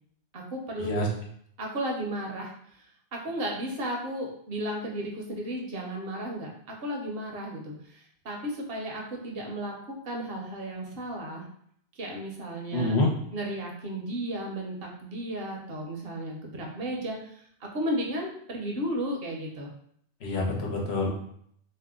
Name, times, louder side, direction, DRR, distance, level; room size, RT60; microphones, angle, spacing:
voice 1, 0.3-1.1 1.6-2.5 2.8-2.9 3.1-9.8 10.0-11.5 12.0-13.0 13.3-19.7, right 1 dB, 65° right, 0 dB, 0.9 m, -34 dB
voice 2, 12.7-13.1 20.2-21.1, left 2 dB, 80° left, -2 dB, 1.0 m, -26 dB
2.7 x 2.1 x 3.5 m, 0.67 s
omnidirectional pair, 1.1 m